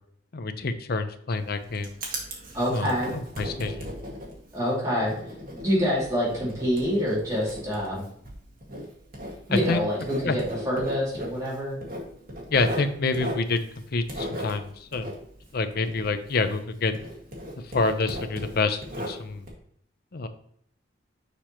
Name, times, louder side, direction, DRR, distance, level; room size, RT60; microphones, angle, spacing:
voice 1, 0.3-1.9 2.7-3.9 9.5-9.8 10.2-10.3 12.5-13.6 13.9-15.2 15.5-16.9 17.7-19.5 20.1-20.3, left 3 dB, 55° left, 9 dB, 0.6 m, -27 dB
Writing, 1.3-16.7 16.9-19.5, equal, 55° right, 1.9 m, -37 dB
voice 2, 2.5-3.1 4.5-5.1 5.5-8.1 9.5-11.8, equal, 20° right, -7 dB, 2.5 m, -26 dB
6.7 x 5.6 x 3.0 m, 0.67 s
head